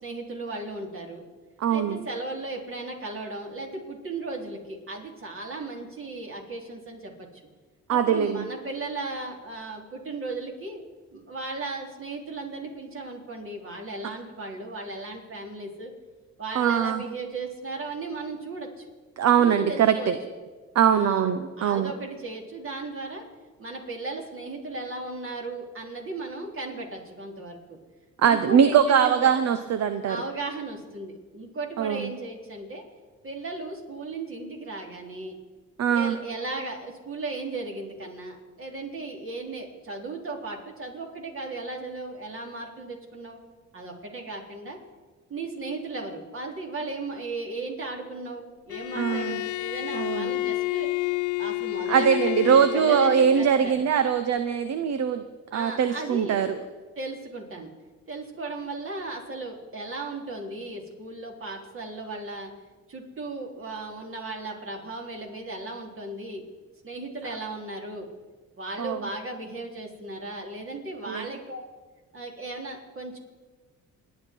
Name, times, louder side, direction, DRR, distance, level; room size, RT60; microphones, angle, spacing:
voice 1, 0.0-1.3 1.7-7.4 7.9-10.8 11.1-15.9 16.4-18.9 19.4-20.1 20.9-21.3 21.6-23.2 23.6-27.8 28.2-29.3 30.0-32.8 33.2-35.4 35.9-43.4 43.7-44.8 45.3-50.9 51.4-53.9 55.5-56.4 57.0-57.7 58.1-62.5 62.9-66.4 66.8-68.1 68.6-71.6 72.1-73.2, right 2 dB, 45° right, 1 dB, 3.6 m, -36 dB
voice 2, 1.6-2.0 7.9-8.5 16.5-17.0 19.2-20.1 20.7-21.9 28.2-30.2 31.8-32.1 35.8-36.2 49.0-49.4 49.9-50.3 51.9-55.2 55.5-56.6 68.8-69.0 71.1-71.3, right 8 dB, 60° right, 10 dB, 0.9 m, -22 dB
Bowed string instrument, 48.7-53.5, left 19 dB, 75° left, 0.5 m, -29 dB
28.0 x 10.5 x 4.6 m, 1.4 s
cardioid pair, 90°, 30 cm